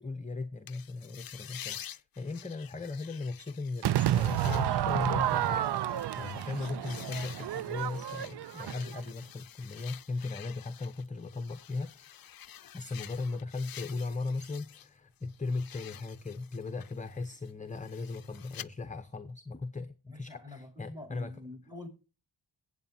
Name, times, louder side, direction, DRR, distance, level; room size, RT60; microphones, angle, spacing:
voice 1, 0.0-12.1 12.7-21.4, left 3 dB, 15° left, 0.8 m, -37 dB
sound 1, 0.7-14.9 15.2-18.7, left 10 dB, 50° left, 0.5 m, -49 dB
Crowd / Fireworks, 3.8-9.1, right 12 dB, 60° right, 0.5 m, -30 dB
voice 2, 20.1-21.9, left 2 dB, 10° right, 4.8 m, -46 dB
21.0 x 8.2 x 2.8 m
cardioid pair, 65°, 46 cm